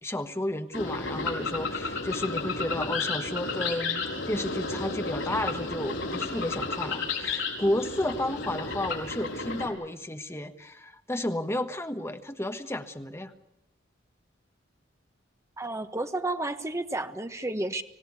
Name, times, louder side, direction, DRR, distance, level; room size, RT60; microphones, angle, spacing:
voice 1, 0.0-13.3, left 1 dB, 15° left, 7 dB, 1.3 m, -32 dB
sound 1, 0.7-9.7, left 3 dB, 70° left, 6.0 m, -32 dB
voice 2, 15.6-17.8, right 2 dB, 15° right, 8 dB, 1.4 m, -31 dB
26.0 x 17.0 x 8.5 m, 0.90 s
head